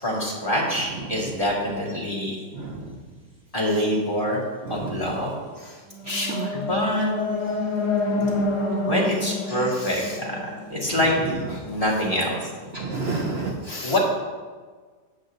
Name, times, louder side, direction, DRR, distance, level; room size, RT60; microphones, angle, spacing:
voice 1, 0.0-2.4 3.5-4.4 4.7-5.3 6.5-7.1 8.9-10.4 10.7-11.1 11.6-12.4 13.8-14.0, left 1 dB, 20° left, -5 dB, 2.1 m, -25 dB
voice 2, 4.7-5.0 6.1-6.5 8.2-8.5 9.5-10.2 10.8-11.0 11.5-11.6 12.7-14.0, right 2 dB, 55° right, 2 dB, 0.7 m, -31 dB
sound 1, 5.9-11.0, left 2 dB, 50° left, 1.3 m, -27 dB
13.0 x 8.8 x 2.6 m, 1.5 s
omnidirectional pair, 1.9 m